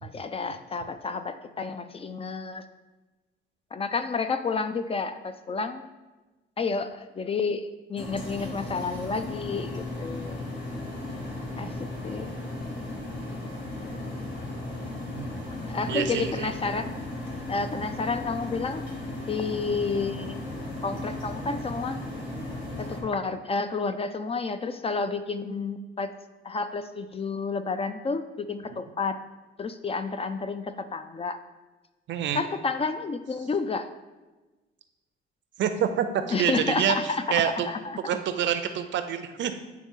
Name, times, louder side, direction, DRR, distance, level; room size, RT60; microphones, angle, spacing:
voice 1, 0.0-2.6 3.7-5.9 6.6-10.5 11.6-11.7 12.0-12.3 15.6-16.9 17.5-18.8 19.3-20.4 20.8-22.0 22.8-26.1 26.4-29.2 29.6-31.4 32.3-33.9 36.3-38.2, left 4 dB, 30° left, 10 dB, 0.4 m, -30 dB
sound 1, 8.0-23.0, left 2 dB, 70° left, 1.7 m, -36 dB
voice 2, 15.9-16.5 32.1-32.4 35.6-37.0 37.3-37.7 38.0-39.6, right 9 dB, 65° right, 9 dB, 0.6 m, -27 dB
8.5 x 3.2 x 3.6 m, 1.2 s
cardioid pair, 90°, 20 cm